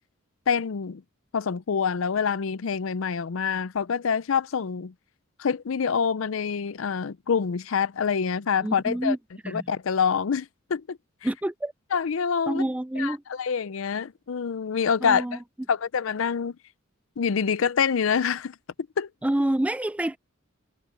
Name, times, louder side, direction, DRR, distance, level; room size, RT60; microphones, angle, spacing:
voice 1, 0.5-1.0 1.3-4.9 5.4-9.2 9.5-11.0 11.9-12.6 13.0-15.2 15.7-16.6 17.2-18.6 19.0-19.1, left 6 dB, 70° left, 0.5 m, -26 dB
voice 2, 8.6-9.2 9.4-9.7 11.2-11.7 12.5-13.2 15.0-15.4 19.2-20.2, right 1 dB, 5° right, 0.3 m, -27 dB
head